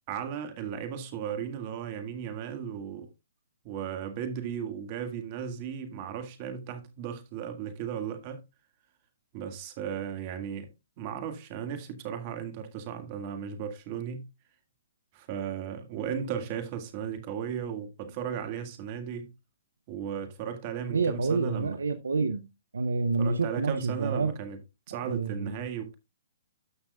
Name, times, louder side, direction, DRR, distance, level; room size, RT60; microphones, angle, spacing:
voice 1, 0.1-3.1 3.6-8.4 9.3-10.7 11.0-14.2 15.1-19.3 19.9-21.7 23.2-24.6 24.9-25.9, right 8 dB, 40° right, 1.8 m, -35 dB
voice 2, 20.9-22.4 22.7-24.3 25.0-25.6, right 4 dB, 85° right, 0.7 m, -28 dB
13.0 x 6.0 x 2.3 m
hypercardioid pair, 135°, 0 cm